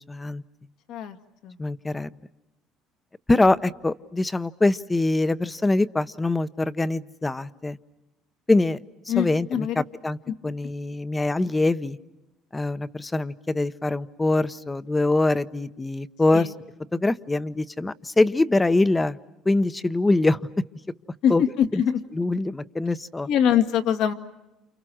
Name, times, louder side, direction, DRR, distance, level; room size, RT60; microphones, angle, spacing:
voice 1, 0.1-0.4 1.6-2.1 3.3-7.8 8.5-8.8 9.1-10.2 10.4-12.0 12.5-16.5 16.9-19.2 19.4-20.4 21.3-21.4 21.7-21.8 22.1-23.3, left 2 dB, 15° left, 15 dB, 0.9 m, -23 dB
voice 2, 9.1-9.8 16.3-16.5 21.2-22.0 23.3-24.1, left 9 dB, 70° left, 8 dB, 2.0 m, -23 dB
29.5 x 28.5 x 6.3 m, 1.0 s
cardioid pair, 115°, 0 cm